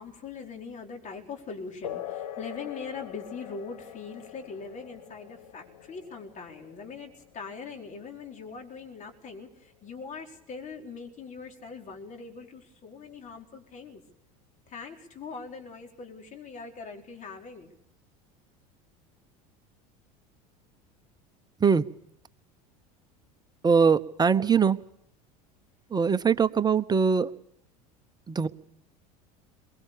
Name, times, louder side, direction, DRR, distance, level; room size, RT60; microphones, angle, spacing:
voice 1, 0.0-14.0 14.7-17.7, left 5 dB, 40° left, 3 dB, 4.8 m, -42 dB
sound 1, 1.8-9.8, left 11 dB, 85° left, 1.3 m, -43 dB
voice 2, 23.6-24.8 25.9-27.3 28.3-28.5, right 6 dB, 20° right, 12 dB, 1.0 m, -22 dB
23.0 x 21.5 x 6.8 m, 0.73 s
hypercardioid pair, 85°, 19 cm